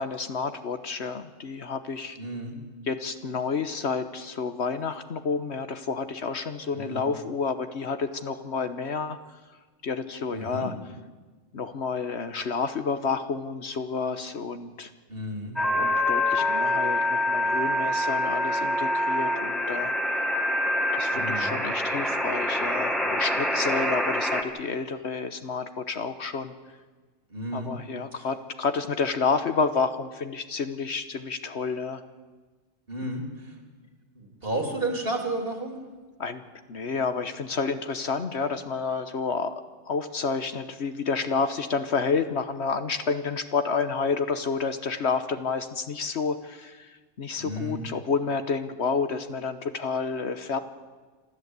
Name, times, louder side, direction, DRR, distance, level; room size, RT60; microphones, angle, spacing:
voice 1, 0.0-2.2 2.9-9.2 9.8-10.7 11.5-14.9 15.7-19.9 20.9-26.5 27.5-32.0 36.2-36.4 36.7-39.5 39.9-50.6, left 5 dB, 60° left, 9 dB, 1.3 m, -29 dB
voice 2, 2.2-2.5 6.7-7.1 10.3-10.7 15.1-15.5 21.1-21.5 27.3-27.7 28.1-28.3 32.9-33.6 34.2-35.8 47.4-47.8, right 1 dB, 45° right, 2 dB, 3.6 m, -32 dB
sound 1, 15.6-24.4, left 1 dB, ahead, 1.7 m, -26 dB
26.5 x 13.5 x 8.2 m, 1.3 s
omnidirectional pair, 1.3 m